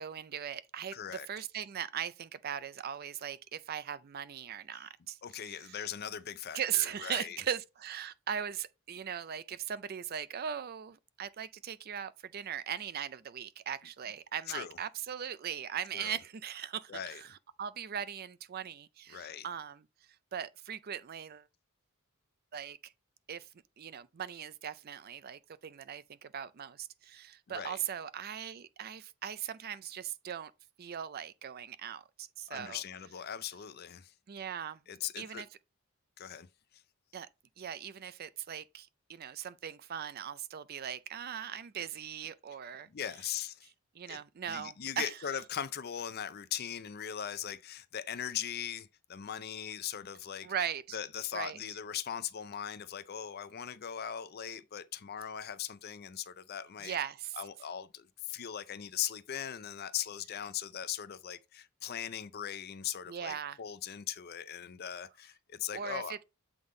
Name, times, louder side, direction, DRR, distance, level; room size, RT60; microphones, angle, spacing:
voice 1, 0.0-0.9 1.3-5.8 6.5-19.8 20.3-21.5 22.5-22.9 23.3-23.5 23.8-30.5 30.8-32.8 34.3-34.8 35.2-35.5 37.1-37.3 37.6-42.9 43.9-45.2 50.4-51.0 51.3-51.6 56.8-57.4 63.1-63.6 65.7-66.2, right 9 dB, 45° right, 0.4 m, -39 dB
voice 2, 0.9-1.3 4.7-4.8 5.2-7.4 14.5-14.8 15.9-16.2 16.9-17.2 19.1-19.5 27.5-27.8 32.5-34.1 34.9-35.4 36.2-36.5 36.7-36.8 42.9-43.7 44.1-44.2 44.5-50.5 50.9-57.0 57.4-66.2, left 9 dB, 45° left, 0.4 m, -39 dB
7.9 x 3.7 x 3.8 m
head